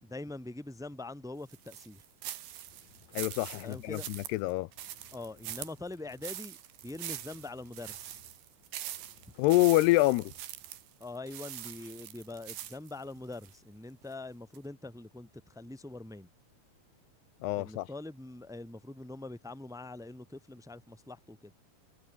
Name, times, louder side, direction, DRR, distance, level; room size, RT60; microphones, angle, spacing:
voice 1, 0.0-2.0 3.6-4.1 5.1-6.6 6.8-8.2 11.0-16.3 17.6-21.5, left 2 dB, ahead, 2.1 m, -43 dB
sound 1, 1.5-13.6 14.0-14.1 14.6-14.7, right 12 dB, 75° right, 3.9 m, -43 dB
sound 2, 2.7-4.4 4.7-6.5 6.8-8.6 8.9-10.6, left 5 dB, 45° left, 5.5 m, -63 dB
voice 2, 3.1-4.7 9.4-10.3 17.4-17.9, left 19 dB, 85° left, 2.6 m, -26 dB
omnidirectional pair, 4.9 m